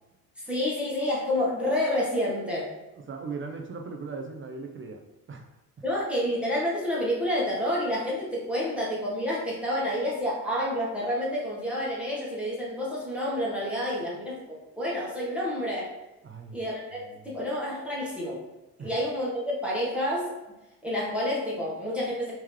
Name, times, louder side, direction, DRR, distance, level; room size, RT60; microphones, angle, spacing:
voice 1, 0.4-2.7 5.8-15.9 16.5-18.4 18.8-20.3 20.8-22.3, left 1 dB, 5° right, -6 dB, 1.3 m, -29 dB
voice 2, 3.0-5.0 5.3-5.5 16.2-16.6 17.0-17.3 18.8-18.9, right 4 dB, 30° right, 3 dB, 0.6 m, -38 dB
3.6 x 3.0 x 3.2 m, 1.0 s
supercardioid pair, 70°, 40 cm